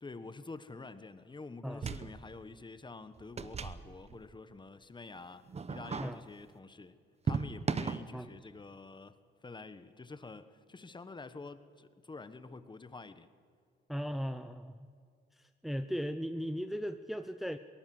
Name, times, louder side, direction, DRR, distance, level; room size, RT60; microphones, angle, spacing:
voice 1, 0.0-6.9 7.2-9.2 9.4-13.3, left 3 dB, 25° left, 12 dB, 1.3 m, -48 dB
sound 1, 1.7-2.3 2.6-2.7 3.2-4.3 5.5-6.2 7.3-8.1, right 5 dB, 30° right, 1.0 m, -36 dB
voice 2, 13.9-14.8 15.6-17.6, equal, ahead, 9 dB, 0.7 m, -37 dB
22.5 x 19.0 x 7.9 m, 2.2 s
cardioid pair, 90°, 20 cm